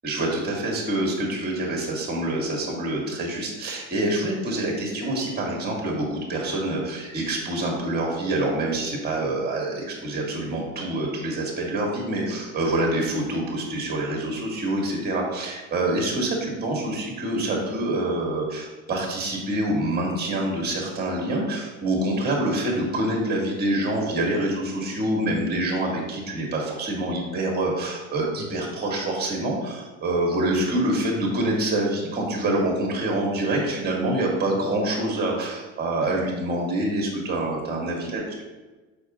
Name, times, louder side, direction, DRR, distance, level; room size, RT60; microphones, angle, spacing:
voice 1, 0.0-38.2, right 1 dB, 25° right, -1 dB, 2.1 m, -26 dB
6.4 x 5.1 x 3.7 m, 1.2 s
supercardioid pair, 95°, 37 cm